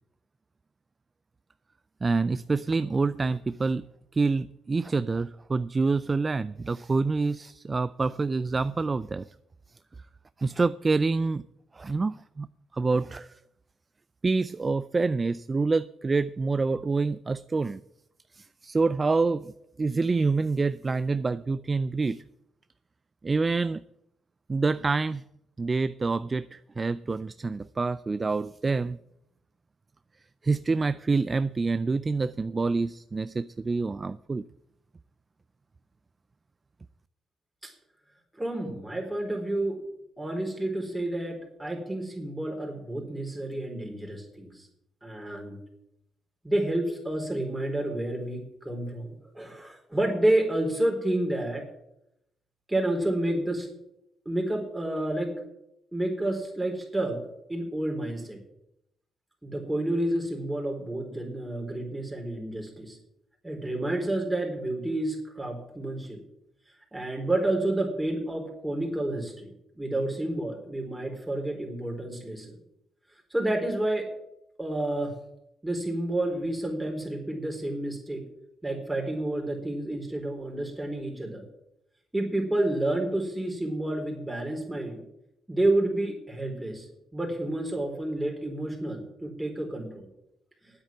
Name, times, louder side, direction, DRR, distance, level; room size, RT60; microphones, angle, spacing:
voice 1, 2.0-3.8 4.1-9.3 10.4-11.4 11.7-12.5 12.7-13.3 14.2-17.8 18.3-19.5 19.8-22.2 23.2-23.8 24.5-25.2 25.6-29.0 30.4-34.4, right 3 dB, 30° right, 15 dB, 0.4 m, -27 dB
voice 2, 38.4-39.8 40.2-44.7 45.0-45.6 46.4-51.6 52.7-53.7 54.3-55.3 55.9-57.2 57.5-58.4 59.4-63.0 63.4-66.2 66.9-72.6 73.3-74.1 74.6-75.2 75.6-78.2 78.6-81.4 82.1-85.0 85.5-86.9 87.1-90.1, right 1 dB, 10° right, 2 dB, 4.1 m, -30 dB
9.8 x 8.2 x 9.0 m, 0.81 s
cardioid pair, 90°, 0 cm